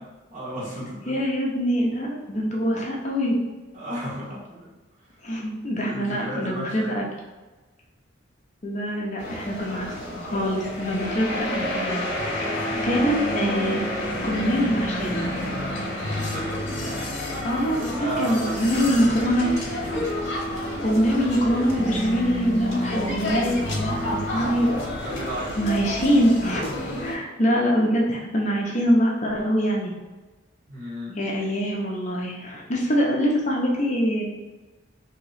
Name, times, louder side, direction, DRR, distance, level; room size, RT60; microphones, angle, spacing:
voice 1, 0.0-1.2 3.7-4.7 5.8-7.0 12.6-13.0 15.9-16.7 17.9-20.0 23.9-24.5 24.8-25.6 26.9-27.0 30.7-31.2, right 1 dB, 35° right, -7 dB, 1.2 m, -34 dB
voice 2, 1.1-3.4 5.2-7.1 8.6-9.9 10.2-12.0 12.8-13.9 14.2-15.3 17.4-19.5 20.8-24.7 25.6-26.7 27.0-29.9 31.2-34.2, equal, 35° left, -2 dB, 0.6 m, -24 dB
sound 1, 9.2-27.2, left 1 dB, 55° left, 0.9 m, -29 dB
sound 2, 18.5-26.1, left 1 dB, 60° right, 1.1 m, -44 dB
2.9 x 2.8 x 4.1 m, 1.2 s
head